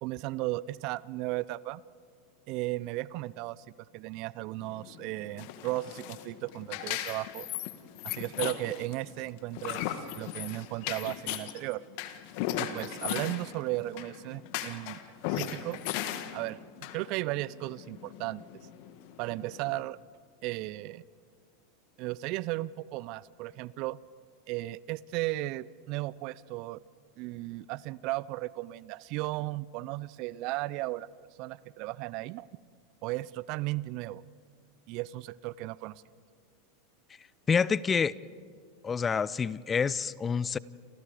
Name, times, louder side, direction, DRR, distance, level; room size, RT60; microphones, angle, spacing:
voice 1, 0.0-1.8 2.5-3.6 3.9-7.5 8.0-11.8 12.6-15.0 15.3-15.8 16.3-16.6 16.9-18.4 19.2-20.0 20.4-21.0 22.0-24.0 24.5-26.8 27.2-31.1 31.4-32.5 33.0-34.2 34.9-36.0, right 18 dB, 50° right, 21 dB, 0.5 m, -35 dB
sound 1, 4.6-19.8, left 12 dB, 55° left, 1.7 m, -37 dB
voice 2, 37.5-38.2 38.8-40.6, left 6 dB, 25° left, 21 dB, 0.6 m, -27 dB
29.0 x 27.5 x 5.0 m, 2.1 s
hypercardioid pair, 90°, 0 cm